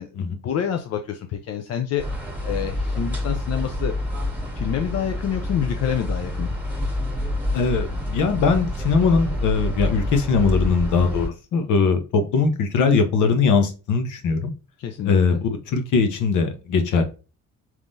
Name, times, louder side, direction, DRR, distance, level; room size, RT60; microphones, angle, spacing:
voice 1, 0.0-3.9 4.5-6.5 14.8-15.4, left 8 dB, 55° left, 6 dB, 0.5 m, -28 dB
sound 1, 2.0-11.3, left 1 dB, 5° right, 1.5 m, -27 dB
voice 2, 7.5-14.5 15.0-17.0, left 5 dB, 80° left, 7 dB, 1.0 m, -21 dB
4.6 x 3.7 x 2.6 m, 0.32 s
cardioid pair, 90°, 30 cm